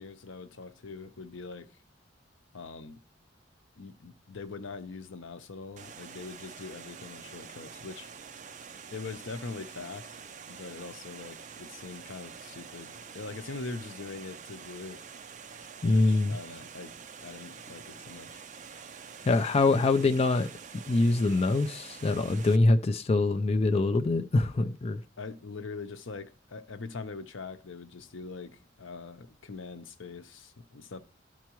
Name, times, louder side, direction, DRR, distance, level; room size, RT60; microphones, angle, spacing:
voice 1, 0.0-1.7 2.5-3.0 3.8-8.1 8.9-10.2 10.5-15.0 15.9-18.4 25.2-31.0, left 4 dB, 80° left, 0.8 m, -42 dB
Water, 5.8-22.6, right 6 dB, 40° right, 0.5 m, -47 dB
voice 2, 15.8-16.4 19.2-20.5 20.7-25.0, left 2 dB, 30° left, 0.4 m, -24 dB
12.5 x 4.6 x 3.0 m
head